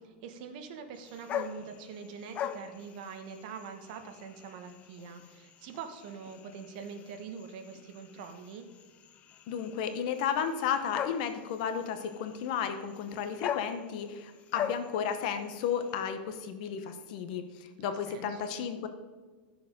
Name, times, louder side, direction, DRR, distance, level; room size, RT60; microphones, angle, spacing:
voice 1, 0.0-8.7 17.8-18.5, right 6 dB, 45° right, 6 dB, 1.2 m, -44 dB
sound 1, 0.9-16.1, left 9 dB, 20° left, 0.4 m, -42 dB
voice 2, 9.5-18.9, left 8 dB, 45° left, 8 dB, 0.9 m, -33 dB
12.5 x 6.9 x 5.2 m, 1.4 s
supercardioid pair, 170°, 6 cm